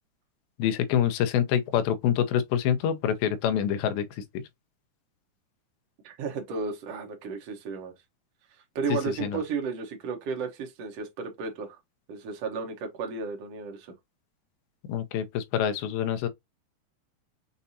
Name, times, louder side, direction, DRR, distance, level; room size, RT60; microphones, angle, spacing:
voice 1, 0.6-4.4 8.9-9.4 14.9-16.3, left 9 dB, 75° left, 2.3 m, -26 dB
voice 2, 6.0-7.9 8.7-11.8 12.1-13.9, right 5 dB, 85° right, 1.3 m, -33 dB
6.8 x 2.7 x 2.7 m
omnidirectional pair, 4.7 m